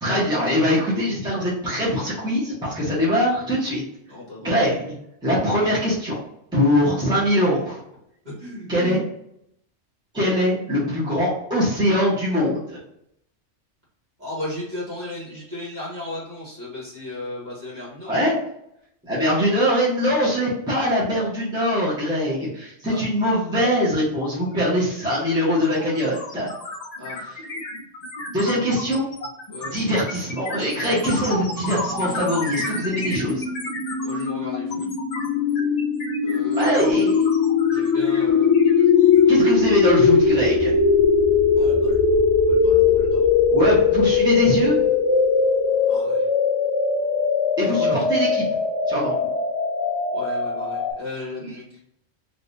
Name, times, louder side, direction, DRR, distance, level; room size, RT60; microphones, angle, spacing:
voice 1, 0.0-3.8 4.4-4.9 5.2-6.2 6.5-7.8 8.7-9.0 10.1-12.8 18.1-18.3 19.0-26.5 28.3-29.0 29.7-33.4 36.5-37.3 39.3-40.7 43.5-44.8 47.6-48.3 48.9-49.1, equal, 5° right, -7 dB, 1.1 m, -22 dB
voice 2, 4.1-4.6 5.4-5.5 8.2-9.0 14.2-18.3 22.9-23.0 27.0-27.2 28.4-28.7 29.5-29.7 34.0-34.9 36.2-36.9 37.7-39.3 41.6-42.0 42.5-43.3 45.9-46.3 47.6-48.0 50.1-51.8, left 1 dB, 40° right, -7 dB, 1.7 m, -35 dB
sound 1, 24.5-24.7 25.0-39.3, left 2 dB, 45° left, 0.6 m, -33 dB
sound 2, 31.8-50.9, left 5 dB, 85° left, 1.0 m, -20 dB
sound 3, 38.9-45.7, equal, 75° right, 1.0 m, -36 dB
3.3 x 2.9 x 2.7 m, 0.75 s
omnidirectional pair, 1.2 m